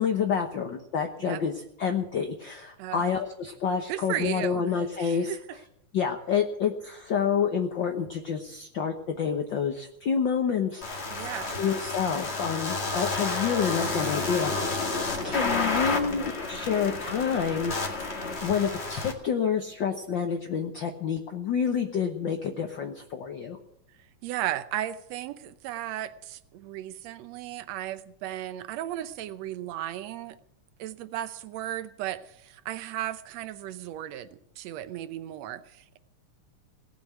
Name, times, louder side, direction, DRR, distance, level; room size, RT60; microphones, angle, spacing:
voice 1, 0.0-1.5 1.8-5.3 5.9-11.2 11.6-14.9 15.2-17.7 18.0-23.6, left 7 dB, 70° left, 1.1 m, -28 dB
voice 2, 3.9-5.6 11.1-11.6 15.1-15.4 24.2-30.4 30.8-36.0, right 13 dB, 70° right, 1.7 m, -35 dB
sound 1, 10.8-19.1, left 3 dB, 25° left, 1.8 m, -30 dB
18.5 x 7.0 x 9.4 m
omnidirectional pair, 3.6 m